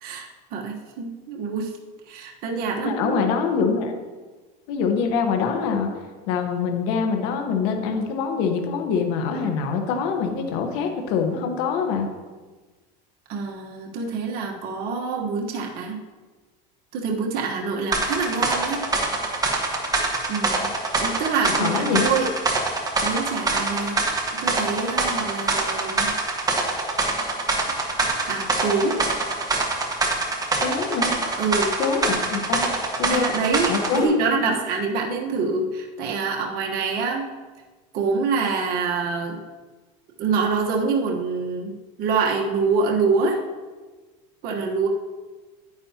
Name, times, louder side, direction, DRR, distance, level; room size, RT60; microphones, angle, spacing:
voice 1, 0.0-1.8 2.1-3.2 13.3-16.0 16.9-18.9 20.3-20.7 21.0-22.3 23.0-24.0 24.4-26.1 28.3-29.1 31.4-31.8 33.1-37.3 37.9-39.4 40.2-41.7 42.0-43.4 44.4-44.9, right 4 dB, 50° right, 0 dB, 1.3 m, -25 dB
voice 2, 2.8-3.9 4.7-5.9 6.3-12.1 21.6-22.2 30.6-31.1 31.8-32.7 33.0-33.3 33.7-34.2 34.5-34.6, left 5 dB, 70° left, 4 dB, 1.3 m, -24 dB
sound 1, 17.9-34.0, right 3 dB, 20° right, 1.4 m, -25 dB
10.0 x 9.5 x 2.9 m, 1.3 s
supercardioid pair, 125°, 19 cm